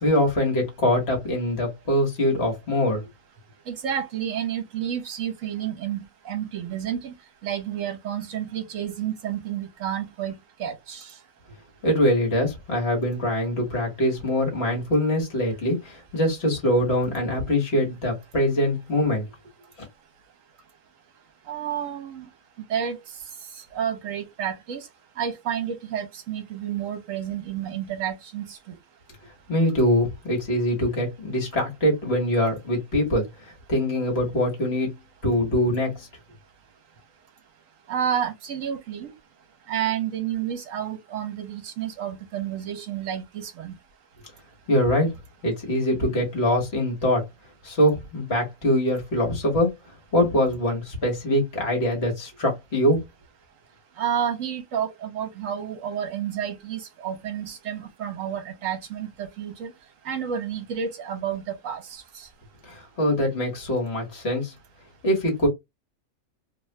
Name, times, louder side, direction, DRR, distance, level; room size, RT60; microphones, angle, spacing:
voice 1, 0.0-3.0 11.8-19.2 29.5-35.0 35.2-36.1 44.7-45.2 45.4-47.2 47.6-49.7 50.1-53.0 62.6-64.5 65.0-65.5, left 1 dB, 45° left, 1.5 m, -23 dB
voice 2, 3.7-7.1 7.4-11.1 21.5-22.3 22.7-23.0 23.7-24.8 25.2-28.7 37.9-39.1 39.7-43.8 54.0-59.7 60.0-62.3, right 9 dB, 65° right, 1.1 m, -30 dB
2.9 x 2.3 x 3.1 m
omnidirectional pair, 1.6 m